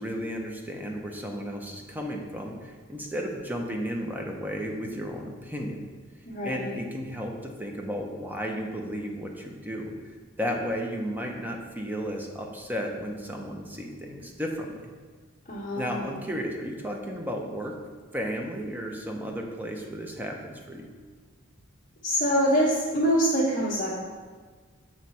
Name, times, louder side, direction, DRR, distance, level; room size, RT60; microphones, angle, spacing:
voice 1, 0.0-5.9 6.4-9.9 10.4-14.8 15.8-17.8 18.1-20.9, equal, 10° right, 1 dB, 0.7 m, -33 dB
voice 2, 6.3-6.8 15.5-16.2 22.0-23.9, equal, 35° left, -9 dB, 1.2 m, -25 dB
7.6 x 3.1 x 5.6 m, 1.5 s
head